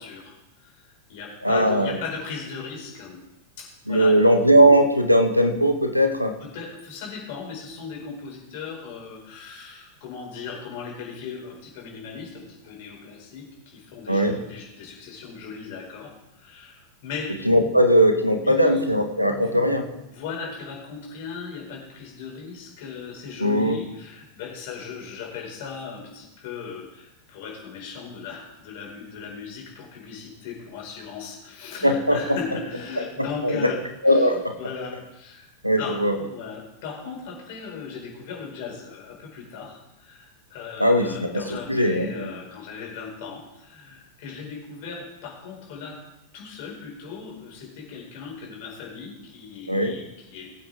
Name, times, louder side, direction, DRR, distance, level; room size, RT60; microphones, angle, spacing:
voice 1, 0.0-3.2 3.6-4.2 6.4-17.4 18.4-19.0 19.3-46.0 46.3-50.5, left 5 dB, 50° left, -1 dB, 4.8 m, -37 dB
voice 2, 1.4-2.0 3.9-6.3 14.1-14.4 17.4-19.9 23.4-23.8 31.8-32.4 33.2-33.7 34.0-34.6 35.6-36.1 40.8-42.3 49.7-49.9, equal, 90° right, 6 dB, 1.3 m, -19 dB
21.0 x 8.6 x 3.5 m, 0.92 s
figure-of-eight pair, 90°, 0 cm